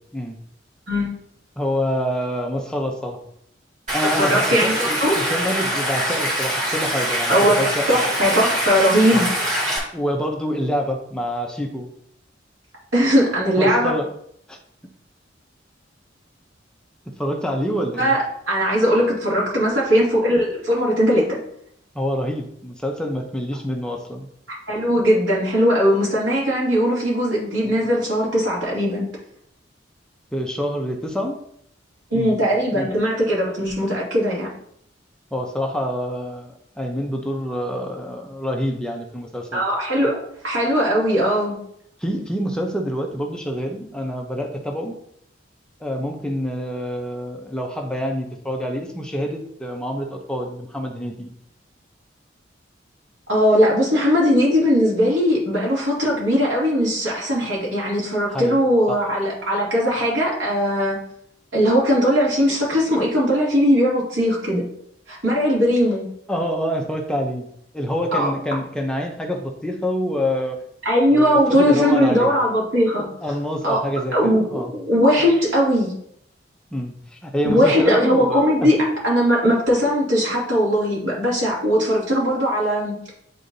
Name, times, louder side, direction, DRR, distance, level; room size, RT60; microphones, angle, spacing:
voice 1, 1.6-3.2 3.9-8.0 9.1-9.3 9.9-11.9 13.5-14.1 14.5-14.6 17.2-18.1 21.9-24.3 30.3-31.4 32.1-32.4 32.7-32.9 35.3-39.6 40.0-40.1 42.0-44.9 45.8-51.3 58.3-58.6 58.9-59.0 66.3-67.5 67.7-70.6 71.1-72.3 73.2-74.7 76.7-78.7, equal, 5° left, 1 dB, 0.6 m, -26 dB
Stream, 3.9-9.8, equal, 40° right, 2.2 m, -24 dB
voice 2, 4.0-5.2 7.3-9.4 12.9-13.9 18.0-21.3 24.5-29.1 32.1-34.5 39.5-40.2 40.4-41.6 53.3-61.0 61.5-64.6 65.1-66.1 68.1-68.3 70.8-73.1 73.6-73.8 74.1-75.9 77.4-78.8 79.0-82.9, equal, 85° right, -5 dB, 2.5 m, -19 dB
9.4 x 3.8 x 2.7 m, 0.70 s
head